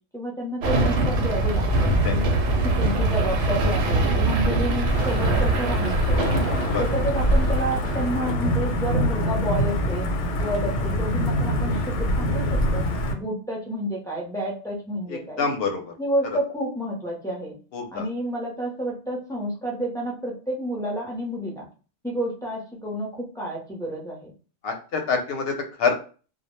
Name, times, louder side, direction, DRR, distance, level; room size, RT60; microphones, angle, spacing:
voice 1, 0.1-2.3 2.6-6.3 6.8-10.1 10.4-12.8 13.1-15.5 16.0-17.5 17.9-21.7 22.0-24.3, equal, 5° left, -4 dB, 0.4 m, -30 dB
sound 1, 0.6-8.1, right 2 dB, 80° right, 0.9 m, -23 dB
Wind / Thunder / Rain, 4.9-13.1, equal, 90° left, 0.9 m, -24 dB
voice 2, 15.1-15.9 17.7-18.0 24.6-25.9, left 5 dB, 65° left, 4 dB, 0.7 m, -26 dB
2.1 x 2.0 x 2.9 m, 0.36 s
omnidirectional pair, 1.2 m